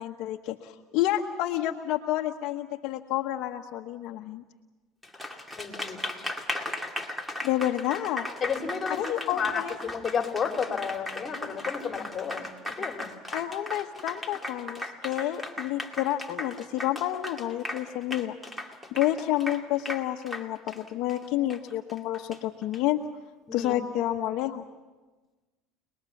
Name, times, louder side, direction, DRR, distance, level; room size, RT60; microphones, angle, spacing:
voice 1, 0.0-4.4 7.4-8.3 9.0-9.8 13.3-18.3 18.9-23.0 23.5-24.6, left 13 dB, 60° left, 3 dB, 1.1 m, -29 dB
Applause, 5.0-22.8, left 1 dB, 5° right, 2.3 m, -37 dB
voice 2, 5.6-6.1 8.4-9.0 9.3-13.1 23.5-23.8, left 6 dB, 25° left, 4 dB, 3.0 m, -32 dB
28.5 x 20.5 x 7.2 m, 1.2 s
supercardioid pair, 115°, 0 cm